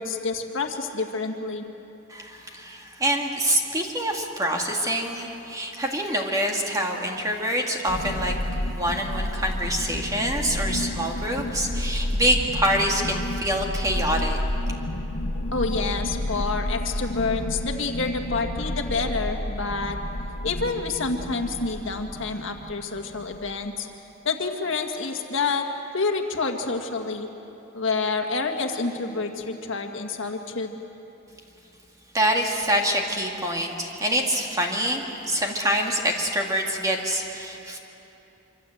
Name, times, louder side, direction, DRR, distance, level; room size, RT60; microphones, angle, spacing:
voice 1, 0.0-1.7 15.5-20.0 20.4-23.9 24.2-25.7 25.9-27.3 27.7-30.8, left 4 dB, 65° left, 4 dB, 1.9 m, -28 dB
voice 2, 2.1-8.3 8.7-14.4 32.1-37.8, equal, 15° right, 1 dB, 2.2 m, -26 dB
sound 1, 7.9-23.7, left 1 dB, 85° left, 1.3 m, -30 dB
25.5 x 25.0 x 7.9 m, 3.0 s
head